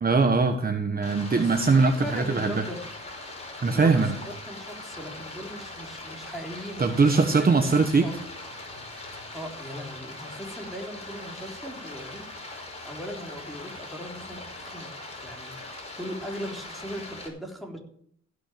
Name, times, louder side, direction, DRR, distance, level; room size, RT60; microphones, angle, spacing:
voice 1, 0.0-2.6 3.6-4.2 6.8-8.1, right 4 dB, 30° right, 6 dB, 1.3 m, -21 dB
Stream, 1.0-17.3, left 2 dB, 20° left, 5.1 m, -41 dB
voice 2, 1.7-2.8 3.7-8.2 9.3-12.2 12.5-14.9 15.2-17.8, equal, ahead, 0 dB, 3.8 m, -39 dB
15.5 x 6.4 x 8.6 m, 0.65 s
cardioid pair, 90°, 30 cm